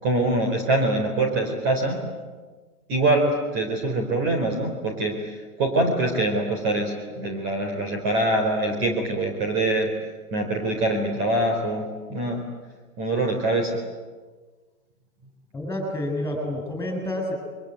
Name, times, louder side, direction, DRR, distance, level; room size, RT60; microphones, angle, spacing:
voice 1, 0.0-2.1 2.9-9.9 10.3-12.4 13.0-13.8, right 2 dB, 30° right, 3 dB, 4.2 m, -24 dB
voice 2, 15.5-17.3, left 1 dB, 5° left, 3 dB, 7.3 m, -29 dB
27.5 x 23.5 x 9.2 m, 1.4 s
hypercardioid pair, 150°, 44 cm